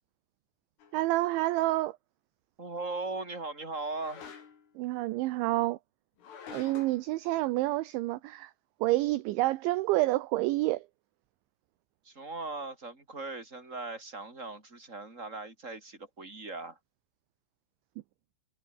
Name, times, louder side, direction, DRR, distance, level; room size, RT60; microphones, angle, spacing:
sound 1, 0.8-1.0 3.9-4.7 6.2-7.1, left 7 dB, 75° left, 7.5 m, -47 dB
voice 1, 0.9-2.0 4.8-5.8 6.5-8.5 8.8-10.9, right 18 dB, 75° right, 3.0 m, -28 dB
voice 2, 2.6-4.3 12.0-16.8, right 3 dB, 15° right, 6.1 m, -39 dB
omnidirectional pair, 5.8 m